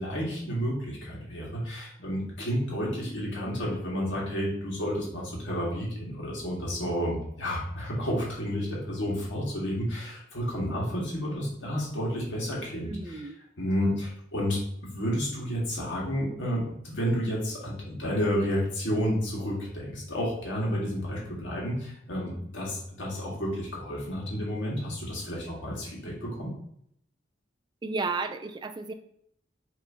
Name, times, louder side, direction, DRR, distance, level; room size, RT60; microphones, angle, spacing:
voice 1, 0.0-13.2 13.6-14.6 14.9-26.5, equal, 80° left, -4 dB, 1.7 m, -31 dB
voice 2, 12.8-13.4 27.8-28.9, right 4 dB, 25° right, 7 dB, 0.3 m, -33 dB
6.4 x 3.0 x 2.7 m, 0.71 s
head